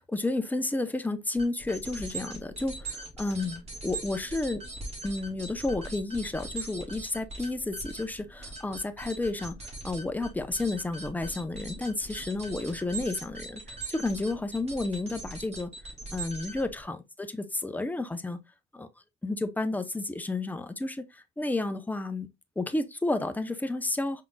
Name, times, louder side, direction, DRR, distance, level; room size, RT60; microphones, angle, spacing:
voice 1, 0.0-4.7 5.0-9.6 9.8-15.7 16.1-18.4 18.7-18.9 19.2-22.3 22.6-24.2, left 2 dB, 10° left, 0.6 m, -31 dB
sound 1, 1.4-16.8, right 2 dB, 30° right, 2.9 m, -41 dB
5.1 x 3.8 x 2.2 m
cardioid pair, 90°, 20 cm